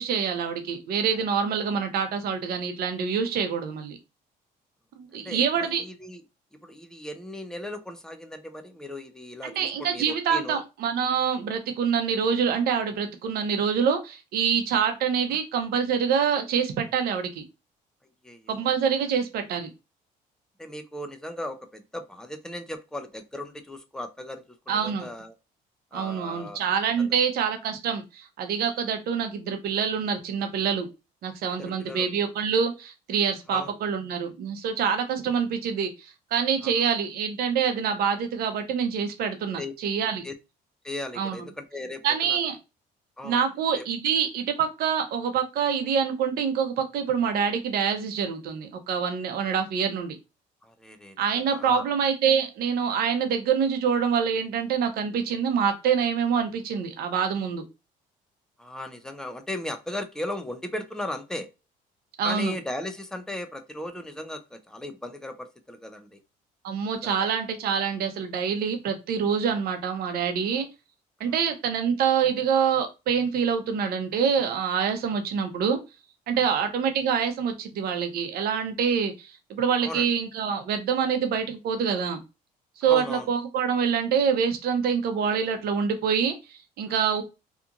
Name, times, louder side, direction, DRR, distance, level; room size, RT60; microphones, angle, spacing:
voice 1, 0.0-4.0 4.9-5.8 9.4-17.4 18.5-19.7 24.7-25.1 25.9-30.9 31.2-40.2 41.2-41.4 42.0-42.6 43.2-50.2 51.2-57.6 62.2-62.5 66.6-70.7 71.2-75.8 76.3-82.2 82.8-87.2, right 7 dB, 65° right, 7 dB, 0.7 m, -26 dB
voice 2, 5.1-6.2 6.6-10.6 18.2-18.7 20.6-25.3 25.9-26.6 27.0-27.1 31.6-32.1 33.5-33.7 36.6-36.7 39.6-39.7 40.2-40.3 40.8-42.4 43.2-43.5 43.7-43.8 50.6-51.9 58.6-61.5 62.2-66.2 67.0-67.3 76.5-76.6 79.8-80.1 82.8-83.3, left 1 dB, 5° left, 6 dB, 0.4 m, -37 dB
2.8 x 2.4 x 2.4 m, 0.27 s
cardioid pair, 110°, 17 cm